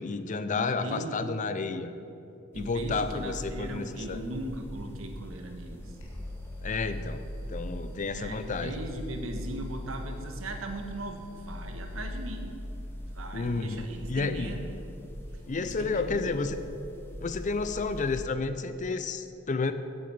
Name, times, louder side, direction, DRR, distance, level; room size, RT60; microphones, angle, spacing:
voice 1, 0.0-1.9 2.5-4.2 6.6-8.7 13.3-14.5 15.5-16.6 17.2-19.7, left 4 dB, 40° left, 10 dB, 0.5 m, -31 dB
voice 2, 0.5-1.2 2.5-6.0 8.1-12.5 13.1-14.8 15.6-16.3, right 1 dB, 80° right, 4 dB, 1.3 m, -39 dB
sound 1, 2.5-18.3, equal, 10° left, 1.1 m, -42 dB
sound 2, 6.0-12.4, left 2 dB, 65° left, 2.2 m, -45 dB
9.8 x 7.9 x 6.8 m, 2.8 s
head